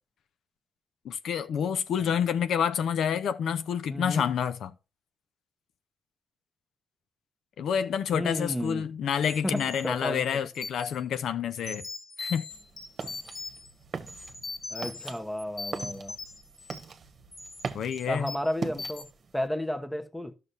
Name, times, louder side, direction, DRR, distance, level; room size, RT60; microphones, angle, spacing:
voice 1, 1.0-4.7 7.6-11.9 12.2-12.5 17.7-18.3, left 8 dB, 70° left, 0.6 m, -28 dB
voice 2, 3.9-4.3 8.1-8.9 9.4-10.4 14.7-16.1 18.1-19.0 19.3-20.3, left 1 dB, 5° left, 1.0 m, -32 dB
sound 1, 9.2-11.0 11.5-13.7 14.1-15.1 15.4-16.9 17.3-17.6 17.9-18.5 18.8-19.0, left 3 dB, 45° left, 2.1 m, -40 dB
sound 2, 12.5-19.5, right 5 dB, 45° right, 1.2 m, -41 dB
12.0 x 6.7 x 2.7 m
cardioid pair, 90°, 0 cm